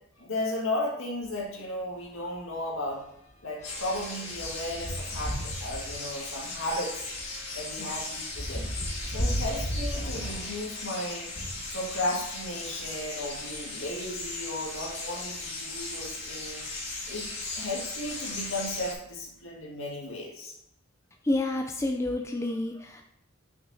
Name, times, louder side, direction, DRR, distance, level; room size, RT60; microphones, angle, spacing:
voice 1, 0.2-3.0 3.4-7.1 7.5-8.7 9.1-11.3 11.7-16.7 17.1-20.5, left 1 dB, 70° left, -2 dB, 1.8 m, -35 dB
sound 1, 1.2-1.4 1.8-1.9 2.2-11.7 12.4-13.8 14.5-14.6 14.8-14.9 16.6-16.7 17.3-17.6 18.0-19.3, equal, 35° left, 1.2 m, -37 dB
sound 2, 3.6-18.9, left 3 dB, 55° left, 2.2 m, -38 dB
voice 2, 21.2-23.0, left 2 dB, 15° left, 4 dB, 0.4 m, -29 dB
9.1 x 5.9 x 2.7 m, 0.74 s
head